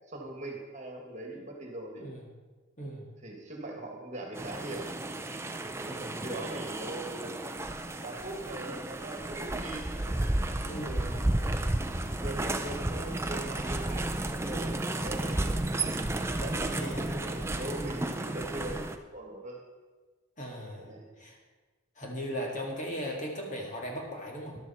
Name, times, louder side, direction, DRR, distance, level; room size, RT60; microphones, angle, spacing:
voice 1, 0.0-2.1 3.2-4.9 6.0-10.3 10.8-11.6 12.2-15.9 16.4-19.6 20.8-21.1, right 1 dB, 35° right, 1 dB, 2.0 m, -41 dB
voice 2, 2.8-3.1 5.8-6.2 10.6-11.2 16.2-16.4 16.7-17.1 20.4-20.9 21.2-21.4 22.0-24.6, equal, 35° left, 0 dB, 2.0 m, -38 dB
sound 1, 4.4-19.0, right 1 dB, 10° right, 0.5 m, -33 dB
13.5 x 11.5 x 4.3 m, 1.3 s
head